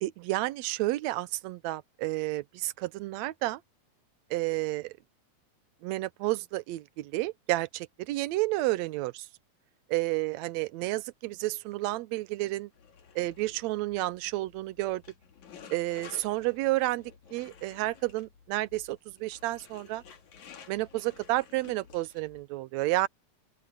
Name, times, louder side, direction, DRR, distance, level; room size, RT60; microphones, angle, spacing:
voice 1, 0.0-3.6 4.3-4.9 5.8-9.3 9.9-12.7 13.2-15.0 15.7-20.0 20.7-23.1, right 18 dB, 80° right, 1.8 m, -31 dB
sound 1, 12.7-22.5, left 6 dB, 85° left, 3.7 m, -53 dB
open air
omnidirectional pair, 3.3 m